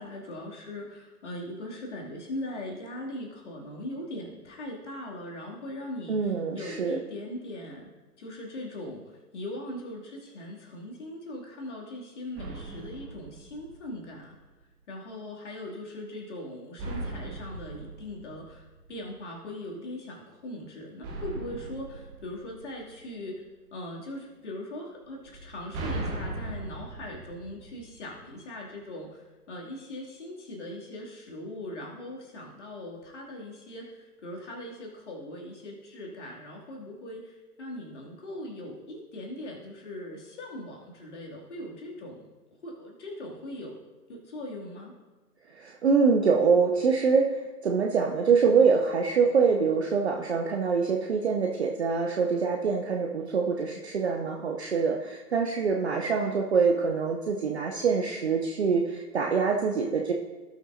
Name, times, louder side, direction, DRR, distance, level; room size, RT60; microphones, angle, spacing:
voice 1, 0.0-7.9 8.2-14.3 14.9-23.4 23.7-42.3 42.6-43.8 44.1-44.9, left 1 dB, 45° left, -2 dB, 2.7 m, -40 dB
voice 2, 6.1-7.0 45.5-60.1, right 5 dB, 45° right, 1 dB, 0.8 m, -25 dB
sound 1, 12.3-14.2 16.8-19.2 21.0-23.3 25.2-28.3, right 2 dB, 10° right, 1.0 m, -39 dB
17.5 x 5.9 x 2.7 m, 1.3 s
figure-of-eight pair, 130°, 47 cm